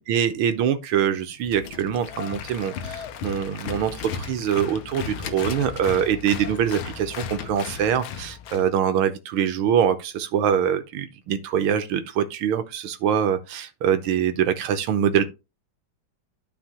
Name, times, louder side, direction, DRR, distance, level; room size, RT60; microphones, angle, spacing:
voice 1, 0.0-15.2, right 8 dB, 85° right, 1.8 m, -24 dB
sound 1, 1.3-7.7, left 6 dB, 70° left, 1.7 m, -41 dB
Applause, 2.0-8.7, left 7 dB, 90° left, 1.7 m, -36 dB
12.5 x 4.3 x 2.9 m
omnidirectional pair, 2.2 m